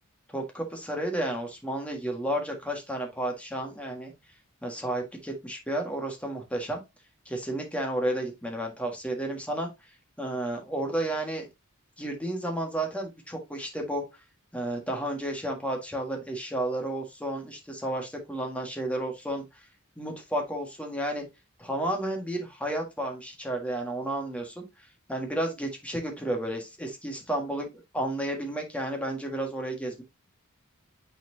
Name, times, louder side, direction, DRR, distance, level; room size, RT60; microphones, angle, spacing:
voice 1, 0.3-4.1 4.6-6.8 7.2-9.7 10.2-11.5 12.0-14.0 14.5-19.4 20.0-21.2 21.6-24.6 25.1-27.7 27.9-30.0, right 1 dB, 5° left, 2 dB, 1.6 m, -32 dB
9.2 x 4.3 x 2.7 m, 0.21 s
head